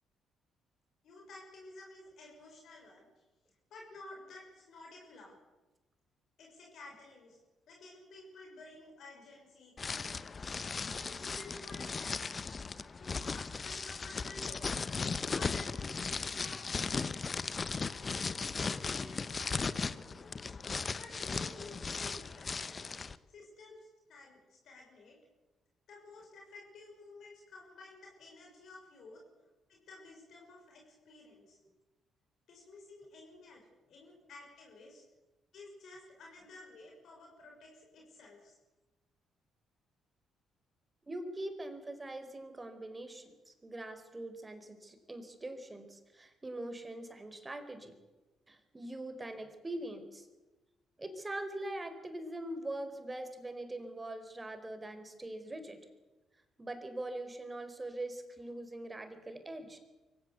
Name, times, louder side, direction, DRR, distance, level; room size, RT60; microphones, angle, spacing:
voice 1, 1.0-3.1 3.7-5.4 6.4-7.4 7.7-10.5 10.9-12.4 13.0-15.0 15.3-17.4 17.8-18.3 18.6-20.2 20.9-22.9 23.3-25.2 25.9-29.2 29.7-31.6 32.5-33.6 33.9-35.0 35.5-38.6, left 2 dB, 60° left, 0 dB, 6.7 m, -53 dB
sound 1, 9.8-23.1, left 4 dB, 40° left, 1.0 m, -37 dB
voice 2, 16.1-16.4 19.3-19.5 41.1-48.0 48.5-50.3 51.0-55.9 56.6-59.8, right 1 dB, 25° right, 8 dB, 4.4 m, -43 dB
24.0 x 16.0 x 8.3 m, 1.1 s
hypercardioid pair, 45°, 0 cm